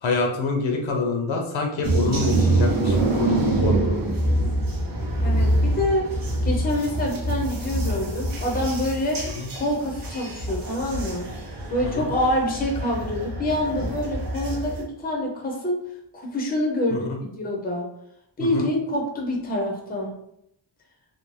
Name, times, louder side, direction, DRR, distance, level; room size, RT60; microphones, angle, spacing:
voice 1, 0.0-4.0 9.4-9.5 11.8-12.1 16.9-17.2 18.4-18.7, left 4 dB, 70° left, 2 dB, 0.6 m, -26 dB
sound 1, 1.8-14.8, right 2 dB, 45° right, 0.6 m, -25 dB
voice 2, 5.2-6.1 6.4-9.2 9.5-11.2 11.7-15.8 16.1-17.8 18.4-20.1, left 1 dB, 20° left, -1 dB, 0.5 m, -26 dB
2.6 x 2.0 x 3.1 m, 0.77 s
wide cardioid pair, 145°, 49 cm